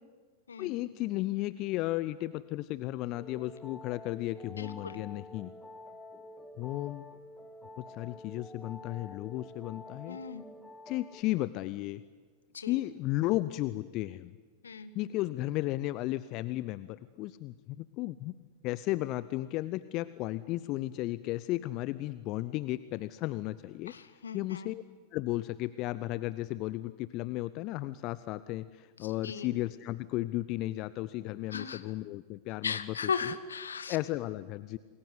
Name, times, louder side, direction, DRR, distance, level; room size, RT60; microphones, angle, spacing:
voice 1, 0.6-5.5 6.6-7.0 7.8-10.2 10.9-12.0 12.7-14.3 14.9-18.4 18.6-23.9 24.3-24.8 25.1-32.9 33.9-34.8, left 17 dB, 40° left, 16 dB, 0.8 m, -34 dB
sound 1, 3.2-11.2, left 1 dB, 5° left, 2.0 m, -49 dB
voice 2, 4.4-5.0 10.1-10.4 12.5-12.8 14.6-14.9 23.9-24.7 29.2-29.5 31.5-31.8 32.6-34.0, left 6 dB, 70° left, 12 dB, 1.8 m, -37 dB
28.0 x 21.5 x 9.8 m, 1.5 s
figure-of-eight pair, 90°, 0 cm